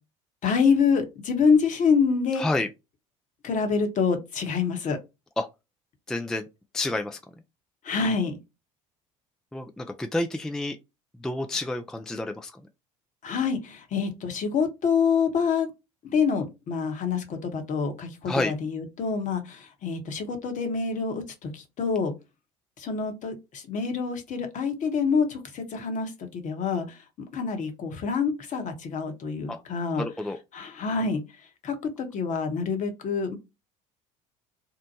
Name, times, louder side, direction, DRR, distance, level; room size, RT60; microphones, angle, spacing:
voice 1, 0.4-2.4 3.4-5.0 7.8-8.4 13.2-15.7 16.0-22.1 22.8-26.8 27.3-30.0 30.5-31.2 31.6-33.4, left 5 dB, 45° left, 0.9 m, -26 dB
voice 2, 2.4-2.7 5.4-5.5 6.1-6.5 6.7-7.2 9.5-10.8 11.2-12.6 18.3-18.5 29.5-29.6 30.0-30.4, left 2 dB, 5° left, 0.3 m, -29 dB
2.7 x 2.1 x 2.7 m
hypercardioid pair, 65°, 17 cm